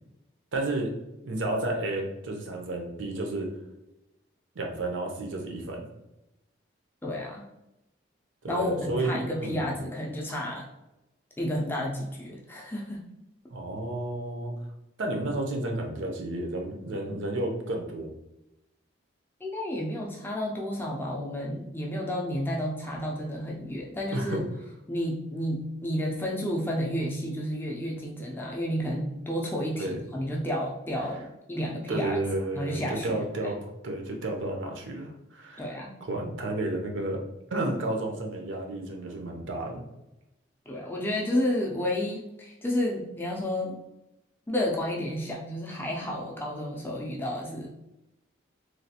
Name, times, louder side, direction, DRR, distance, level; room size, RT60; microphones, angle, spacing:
voice 1, 0.5-0.9 1.2-3.5 4.6-5.9 8.4-9.6 13.5-14.5 15.0-18.1 24.1-24.4 29.8-30.0 31.7-35.7 36.0-37.2 37.5-39.8, right 2 dB, 75° right, 2 dB, 0.6 m, -31 dB
voice 2, 7.0-7.4 8.5-10.7 11.4-13.1 19.4-24.5 24.9-32.2 32.5-33.2 35.6-35.9 40.7-43.8 44.5-47.7, left 1 dB, 10° left, -2 dB, 0.4 m, -31 dB
3.1 x 2.3 x 2.8 m, 0.92 s
head